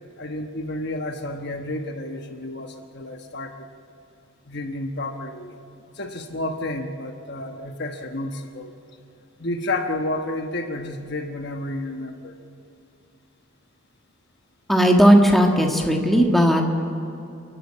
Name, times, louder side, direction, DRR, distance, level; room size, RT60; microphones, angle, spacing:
voice 1, 0.2-3.7 4.5-5.6 6.0-8.7 9.4-12.3, left 2 dB, 50° left, 5 dB, 1.2 m, -30 dB
voice 2, 14.7-16.6, equal, ahead, 1 dB, 1.6 m, -16 dB
29.0 x 11.5 x 8.6 m, 2.7 s
head